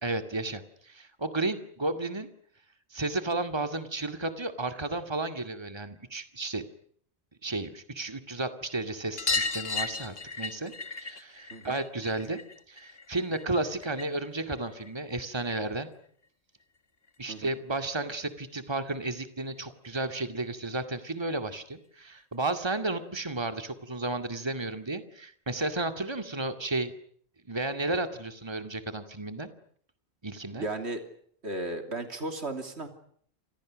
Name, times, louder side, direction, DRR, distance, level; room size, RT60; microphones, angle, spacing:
voice 1, 0.0-2.3 2.9-6.6 7.4-10.7 11.0-12.4 12.7-15.9 17.2-26.9 27.5-29.5 30.2-30.7, right 2 dB, 25° right, 8 dB, 2.2 m, -33 dB
sound 1, 9.2-14.3 14.6-15.7 17.1-17.2 17.4-17.5 17.8-17.9 19.2-19.3 19.6-19.7 20.0-20.1 21.3-21.4 22.2-22.3, left 3 dB, 60° left, 2.1 m, -35 dB
voice 2, 30.5-31.0 31.4-32.9, right 2 dB, 75° right, 6 dB, 3.3 m, -35 dB
29.5 x 27.0 x 6.4 m, 0.63 s
omnidirectional pair, 1.1 m